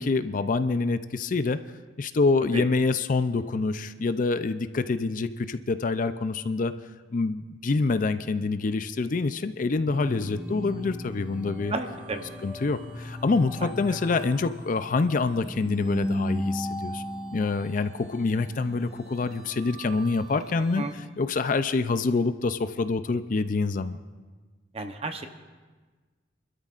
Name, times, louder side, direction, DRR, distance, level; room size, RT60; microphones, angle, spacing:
voice 1, 0.0-1.6 2.0-6.7 7.1-11.7 12.4-17.0 17.3-24.0, left 3 dB, 45° left, 11 dB, 0.4 m, -26 dB
sound 1, 9.9-20.9, left 1 dB, 5° right, 1.2 m, -36 dB
voice 2, 11.7-12.2 13.6-13.7 20.8-20.9 24.7-25.3, right 2 dB, 35° right, 6 dB, 0.9 m, -32 dB
30.0 x 13.0 x 2.5 m, 1.3 s
head